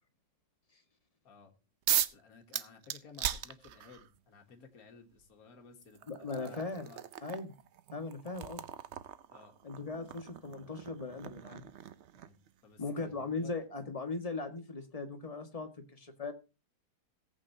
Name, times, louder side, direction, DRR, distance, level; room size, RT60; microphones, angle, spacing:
sound 1, 1.9-2.2 2.5-4.1 5.2-5.3 5.8-12.5, right 10 dB, 65° right, 0.7 m, -38 dB
voice 1, 2.1-7.0 9.3-9.5 12.1-12.4 12.6-13.5, left 5 dB, 55° left, 2 dB, 2.0 m, -56 dB
voice 2, 6.1-6.9 7.2-7.5 7.9-8.6 9.6-11.6 12.8-16.3, left 3 dB, 20° left, 5 dB, 1.5 m, -39 dB
18.0 x 8.4 x 2.7 m, 0.30 s
omnidirectional pair, 1.9 m